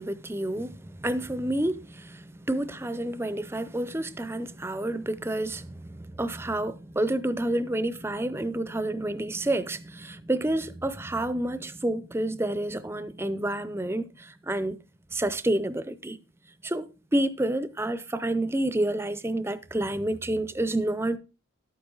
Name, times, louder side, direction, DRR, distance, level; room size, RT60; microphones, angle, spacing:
voice 1, 0.0-14.8 15.1-16.2 16.6-21.2, right 1 dB, 10° right, 0.5 m, -29 dB
11.5 x 8.8 x 3.8 m
head